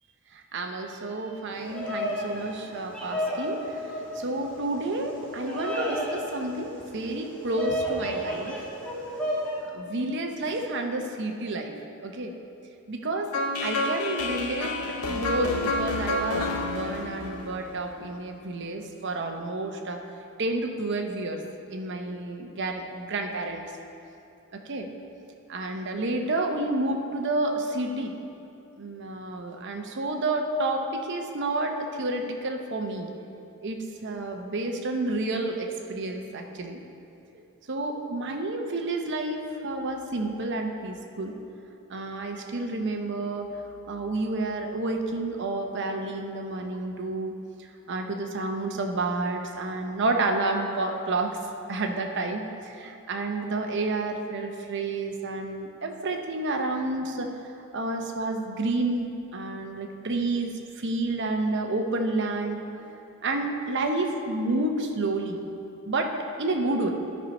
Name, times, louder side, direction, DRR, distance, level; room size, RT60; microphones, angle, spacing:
voice 1, 0.3-3.6 4.1-8.7 9.7-11.7 12.0-12.3 12.9-13.3 13.6-20.0 20.4-21.4 21.7-23.7 24.5-24.9 25.5-28.1 28.8-33.1 33.6-36.8 37.7-41.4 41.9-43.5 43.9-47.3 47.9-51.4 51.7-57.3 57.7-62.9 63.2-65.4 65.8-66.1 66.4-66.9, right 2 dB, 55° right, 3 dB, 0.8 m, -30 dB
Bird vocalization bird call bird song, 1.5-9.6, equal, 5° left, 1.4 m, -33 dB
sound 1, 13.3-18.3, left 2 dB, 85° left, 0.9 m, -30 dB
12.0 x 4.5 x 5.3 m, 2.7 s
head